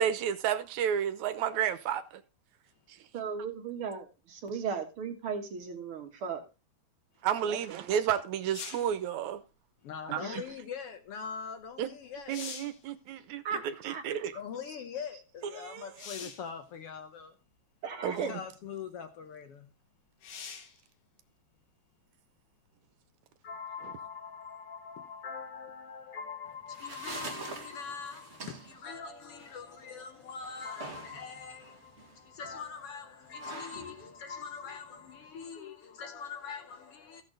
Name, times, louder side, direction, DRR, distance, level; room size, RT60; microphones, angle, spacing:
voice 1, 0.0-2.2 7.2-9.4 10.1-10.2 11.8-11.9 12.3-14.3 15.6-15.8 18.0-18.3, right 9 dB, 80° right, 2.2 m, -31 dB
voice 2, 3.1-6.4 7.4-7.6 10.2-10.4 13.4-14.0 17.8-18.3, right 6 dB, 55° right, 2.0 m, -36 dB
sound 1, 8.5-9.0 11.6-11.7 12.1-12.8 16.0-16.5 17.5-17.6 20.2-20.8 24.4-24.5, left 6 dB, 85° left, 3.0 m, -43 dB
voice 3, 9.8-12.3 14.3-17.3 18.1-19.6 23.4-31.9 32.3-37.2, left 6 dB, 65° left, 1.7 m, -42 dB
sound 2, 26.5-35.5, right 3 dB, 30° right, 1.5 m, -47 dB
15.0 x 6.5 x 3.9 m
omnidirectional pair, 3.3 m